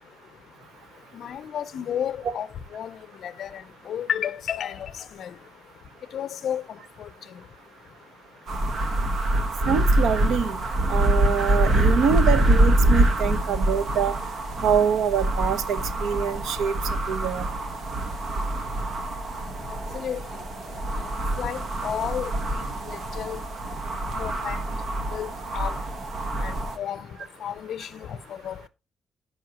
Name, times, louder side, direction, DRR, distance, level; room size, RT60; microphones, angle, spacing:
voice 1, 1.1-2.5 2.7-3.6 3.9-4.9 5.2-5.3 6.1-6.6 7.0-7.1 19.9-20.2 21.4-22.6 23.2-23.4 24.1-24.6 25.1-25.7 26.4-27.1 27.4-28.2 28.4-28.7, left 9 dB, 60° left, 0.7 m, -32 dB
sound 1, 8.5-26.8, right 1 dB, 45° right, 1.4 m, -25 dB
voice 2, 9.7-10.6 10.9-14.2 14.6-16.8 17.1-17.5, right 7 dB, 85° right, 1.0 m, -25 dB
14.0 x 5.5 x 3.0 m
cardioid pair, 160°, 0 cm